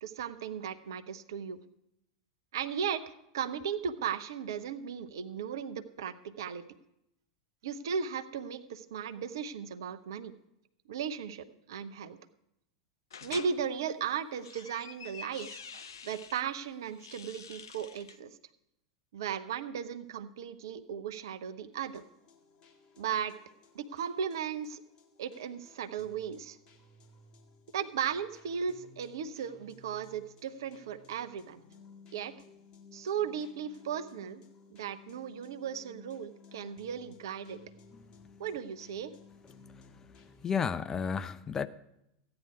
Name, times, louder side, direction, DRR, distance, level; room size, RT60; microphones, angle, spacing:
voice 1, 0.0-1.6 2.5-6.6 7.6-10.3 10.9-12.2 13.2-18.4 19.1-22.0 23.0-23.3 23.7-24.8 25.2-26.6 27.7-31.6 32.1-32.3 32.9-34.4 34.7-37.6 38.4-39.1, right 7 dB, 65° right, 11 dB, 0.7 m, -36 dB
sound 1, 13.1-13.5 14.2-16.4 16.9-18.2, left 7 dB, 75° left, 0.6 m, -47 dB
sound 2, 21.7-40.5, left 4 dB, 35° left, 1.7 m, -58 dB
voice 2, 40.4-41.7, left 6 dB, 20° left, 13 dB, 0.5 m, -31 dB
14.5 x 9.7 x 4.8 m, 0.81 s
figure-of-eight pair, 90°, 2 cm